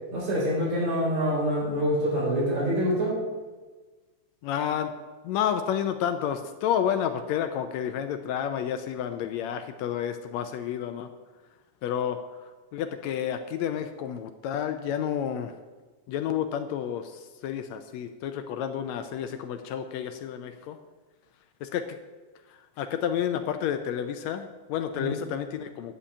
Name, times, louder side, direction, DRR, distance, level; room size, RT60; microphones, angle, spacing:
voice 1, 0.1-3.2 24.9-25.2, equal, 70° right, -5 dB, 5.6 m, -26 dB
voice 2, 4.4-4.9 5.2-11.1 11.8-15.5 16.1-20.8 21.6-22.0 22.5-25.9, left 9 dB, 75° left, 8 dB, 1.7 m, -30 dB
10.0 x 5.5 x 8.3 m, 1.3 s
omnidirectional pair, 3.4 m